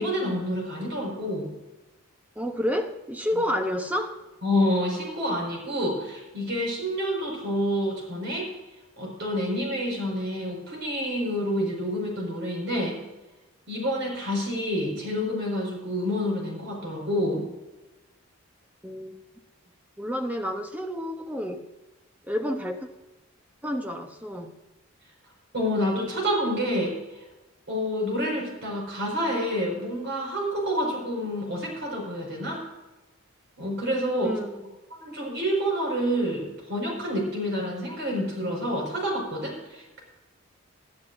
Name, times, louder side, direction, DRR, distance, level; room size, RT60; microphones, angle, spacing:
voice 1, 0.0-1.5 4.4-8.5 9.0-13.0 13.7-17.4 25.5-26.9 27.7-32.6 33.6-34.3 34.9-40.0, equal, 50° right, -1 dB, 5.4 m, -28 dB
voice 2, 2.4-4.2 18.8-19.1 20.0-21.7 22.3-22.9 23.6-24.5 34.2-34.7, equal, 5° right, 5 dB, 0.9 m, -30 dB
20.0 x 11.5 x 2.7 m, 1.1 s
head